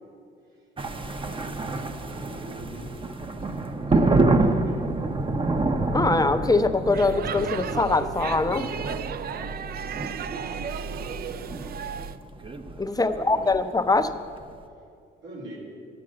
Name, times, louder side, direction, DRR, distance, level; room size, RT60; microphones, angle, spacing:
sound 1, 0.8-14.5, right 2 dB, 25° right, 0.7 m, -28 dB
voice 1, 0.9-3.0 3.3-4.9 9.3-9.5 10.2-12.1 12.9-13.5 15.2-15.6, right 1 dB, 85° right, -3 dB, 3.1 m, -44 dB
voice 2, 5.9-8.7 12.8-14.1, left 3 dB, 20° left, 8 dB, 0.5 m, -23 dB
Speech / Shout / Subway metro underground, 6.9-12.2, right 7 dB, 50° right, 0.4 m, -34 dB
10.5 x 7.7 x 7.5 m, 2.4 s
cardioid pair, 90°, 20 cm